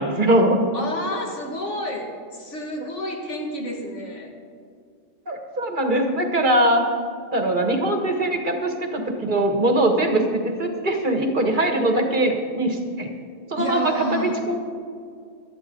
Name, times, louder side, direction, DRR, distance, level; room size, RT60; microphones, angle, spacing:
voice 1, 0.0-0.6 5.3-6.9 7.3-13.1 13.5-14.6, right 1 dB, 40° right, 4 dB, 1.7 m, -21 dB
voice 2, 0.7-4.4 13.6-14.4, left 1 dB, 65° left, 0 dB, 2.3 m, -30 dB
18.5 x 12.5 x 3.9 m, 2.3 s
omnidirectional pair, 1.4 m